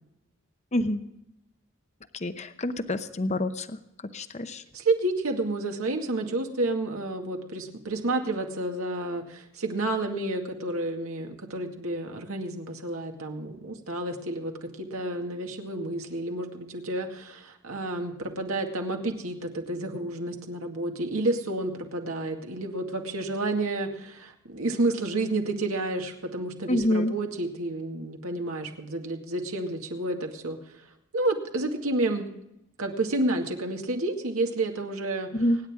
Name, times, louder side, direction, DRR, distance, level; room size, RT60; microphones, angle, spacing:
voice 1, 0.7-1.0 2.2-3.8 4.1-4.6 26.7-27.1 35.3-35.6, left 1 dB, 30° left, 10 dB, 0.7 m, -27 dB
voice 2, 4.7-30.6 31.1-32.3 32.8-35.3, right 2 dB, 75° right, 3 dB, 2.1 m, -30 dB
25.0 x 9.9 x 3.6 m, 0.87 s
head